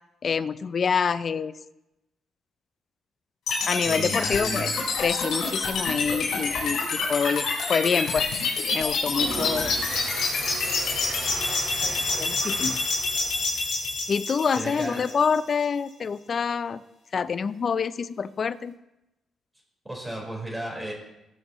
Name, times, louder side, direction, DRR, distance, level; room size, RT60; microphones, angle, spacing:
voice 1, 0.2-1.6 3.7-4.7 5.0-8.3 8.7-9.7 11.8-12.8 14.1-16.8 17.1-18.8, left 6 dB, 45° left, 15 dB, 0.5 m, -27 dB
sound 1, 3.5-15.5, left 3 dB, 75° left, 4.8 m, -27 dB
voice 2, 3.8-4.7 14.5-15.1 19.8-20.9, right 1 dB, 10° right, -2 dB, 4.3 m, -34 dB
sound 2, 9.1-14.1, right 2 dB, 60° right, 4.5 m, -36 dB
20.0 x 7.7 x 3.1 m, 0.93 s
cardioid pair, 90°, 0 cm